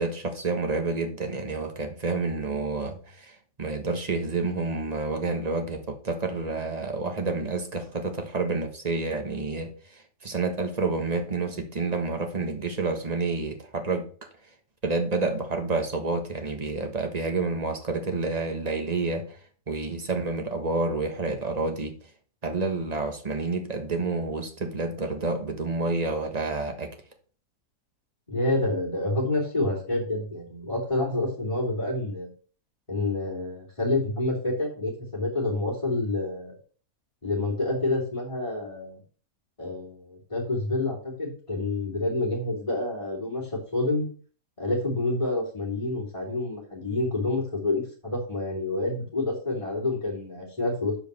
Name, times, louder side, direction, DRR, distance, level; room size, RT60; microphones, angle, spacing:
voice 1, 0.0-14.1 14.8-19.3 19.7-22.0 22.4-26.9, right 3 dB, 25° right, 5 dB, 1.4 m, -29 dB
voice 2, 28.3-32.3 32.9-36.5 37.2-39.0 39.6-44.0 44.6-51.0, left 2 dB, 20° left, -4 dB, 3.1 m, -28 dB
7.5 x 5.1 x 6.7 m, 0.42 s
omnidirectional pair, 1.6 m